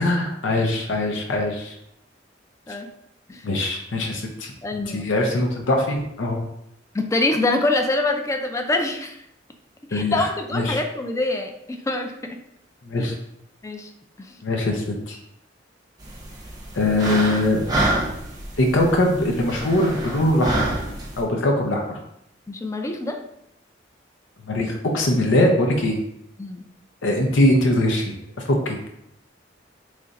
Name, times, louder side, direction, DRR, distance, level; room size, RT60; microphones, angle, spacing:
voice 1, 0.0-1.8 3.4-6.4 9.9-10.8 12.8-13.1 14.4-15.2 16.7-17.6 18.6-20.8 21.2-22.0 24.5-26.0 27.0-28.0 28.5-28.8, left 1 dB, 90° left, 1 dB, 0.6 m, -22 dB
voice 2, 4.6-5.0 6.9-9.2 9.9-12.4 13.6-13.9 14.2-14.4 22.5-23.2 26.4-26.6, left 2 dB, 15° left, 5 dB, 0.3 m, -25 dB
sound 1, 16.0-21.2, right 2 dB, 20° right, 0.7 m, -28 dB
3.2 x 2.5 x 3.9 m, 0.79 s
head